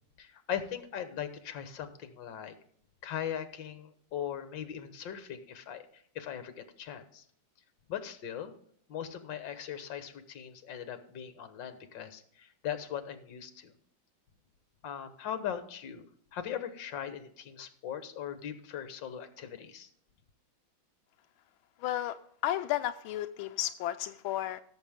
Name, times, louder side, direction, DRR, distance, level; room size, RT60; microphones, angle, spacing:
voice 1, 0.2-2.5 3.0-5.9 6.2-7.2 7.9-8.6 8.9-13.7 14.8-16.0 16.3-19.9, left 9 dB, 70° left, 10 dB, 1.8 m, -39 dB
voice 2, 21.8-22.2 22.4-24.6, left 13 dB, 90° left, 9 dB, 1.4 m, -33 dB
16.5 x 7.4 x 3.6 m, 0.65 s
omnidirectional pair, 2.2 m